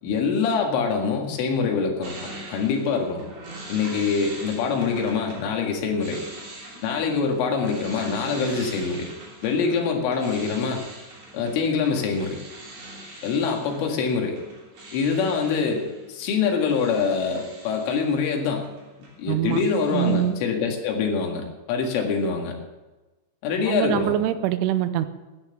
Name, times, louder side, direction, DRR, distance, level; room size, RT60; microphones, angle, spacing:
voice 1, 0.0-2.1 2.5-3.2 3.7-6.2 6.8-9.1 9.4-10.8 11.3-12.4 13.2-14.4 14.9-18.7 19.2-22.6 23.4-24.1, left 5 dB, 85° left, 2 dB, 4.5 m, -24 dB
sound 1, 2.0-19.2 19.5-20.3, right 1 dB, 40° right, 4.1 m, -43 dB
voice 2, 19.3-19.6 19.9-20.4 23.7-25.1, right 12 dB, 85° right, 11 dB, 3.3 m, -23 dB
13.5 x 9.8 x 6.9 m, 1.1 s
omnidirectional pair, 5.6 m